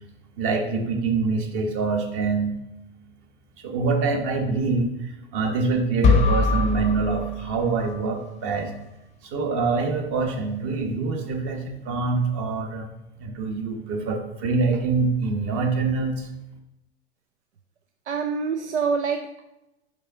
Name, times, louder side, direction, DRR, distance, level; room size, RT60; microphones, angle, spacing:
voice 1, 0.4-2.6 3.6-8.7 9.2-12.9 13.2-16.3, right 4 dB, 40° right, 3 dB, 1.1 m, -25 dB
sound 1, 6.0-8.1, left 4 dB, 20° left, 0.6 m, -22 dB
voice 2, 18.1-19.4, right 5 dB, 90° right, 5 dB, 0.5 m, -26 dB
5.3 x 5.1 x 3.5 m, 0.92 s
hypercardioid pair, 105°, 33 cm